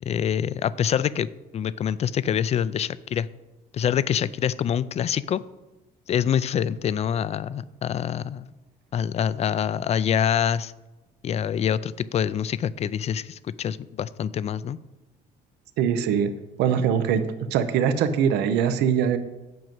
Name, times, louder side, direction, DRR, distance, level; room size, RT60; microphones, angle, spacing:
voice 1, 0.0-3.3 3.7-5.4 6.1-8.5 8.9-10.7 11.2-14.8, left 9 dB, 40° left, 18 dB, 0.4 m, -25 dB
voice 2, 15.8-16.3 16.6-17.2 17.5-19.2, right 8 dB, 85° right, 10 dB, 0.7 m, -22 dB
7.8 x 5.2 x 7.5 m, 1.1 s
cardioid pair, 110°, 17 cm